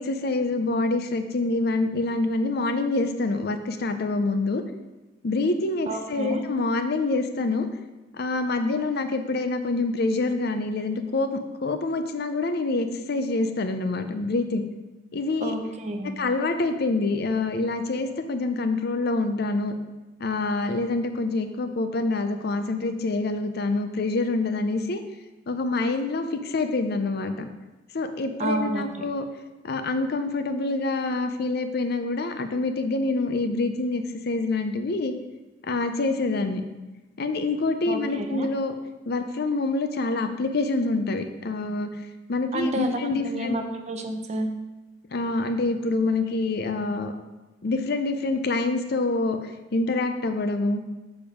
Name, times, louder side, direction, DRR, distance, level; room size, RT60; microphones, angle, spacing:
voice 1, 0.0-4.6 5.2-7.7 8.2-14.6 15.1-15.5 16.2-19.8 20.2-25.0 25.5-27.5 27.9-29.3 29.6-35.1 35.6-36.6 37.2-38.7 39.1-41.9 42.3-43.6 45.1-47.1 47.6-50.8, left 3 dB, 55° left, 8 dB, 0.6 m, -26 dB
voice 2, 5.9-6.4 15.4-16.2 28.4-28.8 37.9-38.5 42.5-44.5, right 1 dB, 35° right, 5 dB, 0.8 m, -29 dB
7.0 x 5.0 x 5.0 m, 1.1 s
head